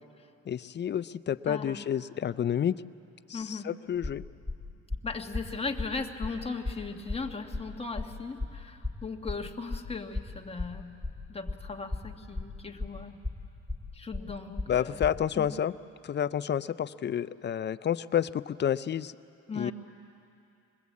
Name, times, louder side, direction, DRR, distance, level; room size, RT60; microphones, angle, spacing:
voice 1, 0.5-2.7 3.3-4.2 14.7-15.7 16.0-19.1 19.6-19.7, left 9 dB, 35° left, 15 dB, 0.5 m, -29 dB
voice 2, 1.5-1.9 3.3-3.7 5.0-10.9 11.3-13.2 13.9-15.0 15.3-15.5 19.5-19.7, left 4 dB, 20° left, 3 dB, 1.5 m, -38 dB
sound 1, 4.0-15.1, left 2 dB, ahead, 3.1 m, -35 dB
22.0 x 21.0 x 8.4 m, 2.7 s
cardioid pair, 90°, 30 cm